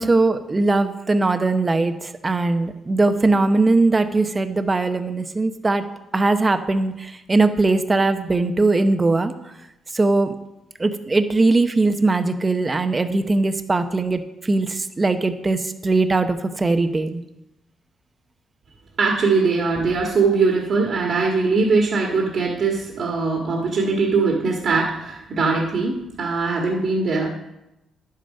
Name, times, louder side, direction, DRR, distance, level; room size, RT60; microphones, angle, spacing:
voice 1, 0.0-5.8 6.1-9.3 9.9-10.3 10.8-17.2, right 3 dB, 25° right, 9 dB, 0.9 m, -20 dB
voice 2, 19.0-27.3, right 4 dB, 55° right, 0 dB, 1.7 m, -21 dB
10.5 x 7.7 x 5.4 m, 0.91 s
cardioid pair, 90°, 0 cm